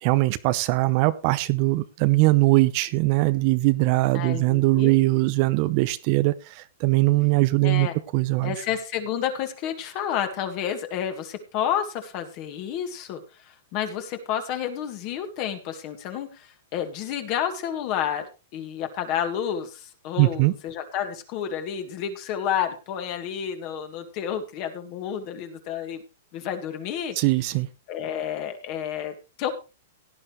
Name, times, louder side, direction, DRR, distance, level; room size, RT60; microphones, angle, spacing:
voice 1, 0.0-8.6 20.2-20.5 27.2-27.7, right 20 dB, 40° right, 14 dB, 0.7 m, -21 dB
voice 2, 4.1-4.9 7.6-7.9 8.4-18.3 18.5-26.0 26.3-27.2 27.9-29.5, left 9 dB, 40° left, 7 dB, 1.9 m, -30 dB
17.0 x 10.0 x 3.2 m, 0.30 s
hypercardioid pair, 155°, 0 cm